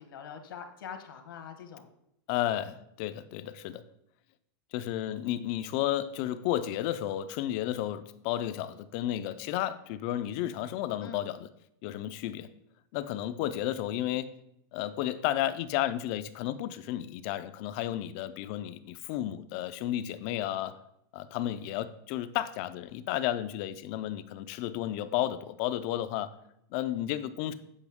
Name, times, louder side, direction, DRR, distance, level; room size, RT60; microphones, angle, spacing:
voice 1, 0.0-1.9 11.0-11.2, left 7 dB, 90° left, 1.3 m, -44 dB
voice 2, 2.3-3.8 4.7-11.5 11.8-12.5 12.9-14.3 14.7-20.8 21.1-26.3 26.7-27.5, left 12 dB, 30° left, 0.3 m, -32 dB
8.2 x 5.3 x 3.5 m
supercardioid pair, 175°, 11 cm